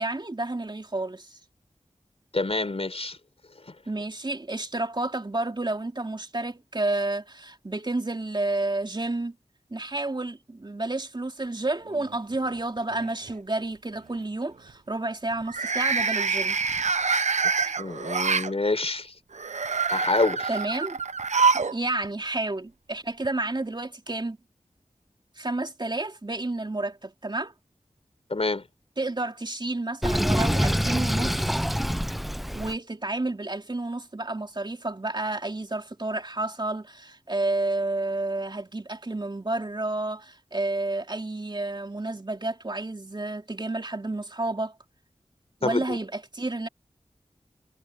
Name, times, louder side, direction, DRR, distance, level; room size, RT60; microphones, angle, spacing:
voice 1, 0.0-1.4 3.9-9.3 9.7-16.6 20.5-21.0 21.7-24.4 25.4-27.5 29.0-31.4 32.5-44.7 45.6-46.7, right 2 dB, 40° right, 3.1 m, -30 dB
voice 2, 2.3-3.2 3.7-3.8 17.8-19.1 19.9-20.5 28.3-28.7 45.6-46.0, left 3 dB, 55° left, 4.1 m, -27 dB
sound 1, 11.9-12.5 12.9-13.3 15.4-18.5 19.3-21.8 22.0-22.1 23.2-23.3, right 5 dB, 75° right, 0.8 m, -26 dB
Sink (filling or washing), 30.0-32.8, equal, ahead, 0.4 m, -25 dB
wide cardioid pair, 50°, 12 cm